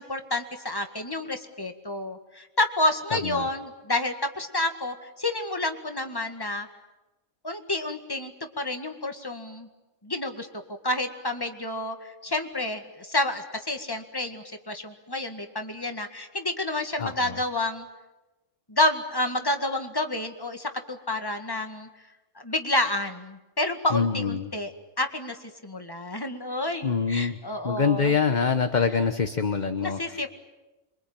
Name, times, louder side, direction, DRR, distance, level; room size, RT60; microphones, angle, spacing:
voice 1, 0.0-6.7 7.4-9.7 10.0-10.5 10.8-17.9 18.7-21.9 22.4-25.4 25.6-28.1 29.8-30.3, left 2 dB, 15° left, 6 dB, 1.9 m, -29 dB
voice 2, 3.1-3.5 17.0-17.4 23.9-24.5 26.8-27.4 27.6-30.3, left 5 dB, 35° left, 8 dB, 1.1 m, -25 dB
27.0 x 24.0 x 8.9 m, 1.1 s
omnidirectional pair, 1.4 m